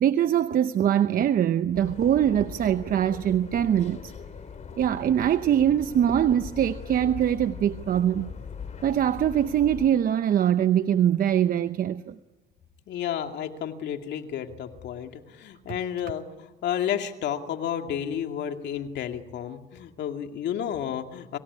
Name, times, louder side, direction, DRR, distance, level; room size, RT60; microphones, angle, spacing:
voice 1, 0.0-4.1 4.8-8.3 8.8-12.2, right 10 dB, 45° right, 11 dB, 0.8 m, -23 dB
sound 1, 1.7-9.9, left 6 dB, 35° left, 3.1 m, -40 dB
voice 2, 12.9-21.4, left 9 dB, 65° left, 5 dB, 2.4 m, -31 dB
26.0 x 16.5 x 9.8 m, 1.2 s
cardioid pair, 105°, 20 cm